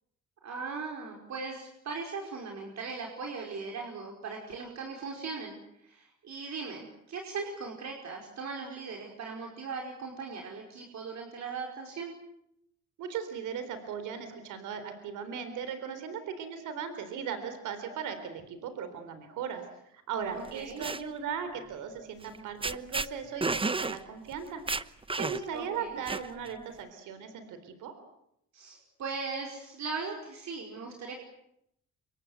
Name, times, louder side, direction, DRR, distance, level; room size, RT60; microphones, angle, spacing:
voice 1, 0.4-5.6 5.8-12.1 20.3-20.8 25.5-26.0 28.5-31.1, right 4 dB, 65° right, 1 dB, 5.3 m, -39 dB
voice 2, 13.0-19.6 20.1-24.6 25.2-27.9, right 7 dB, 85° right, 9 dB, 3.8 m, -37 dB
sound 1, 20.5-21.0 22.2-22.4 22.6-23.1 23.4-24.0 24.3-24.4 24.7-25.6 26.1-26.5, right 3 dB, 20° right, 1.0 m, -31 dB
28.0 x 24.5 x 8.1 m, 0.78 s
cardioid pair, 90°, 30 cm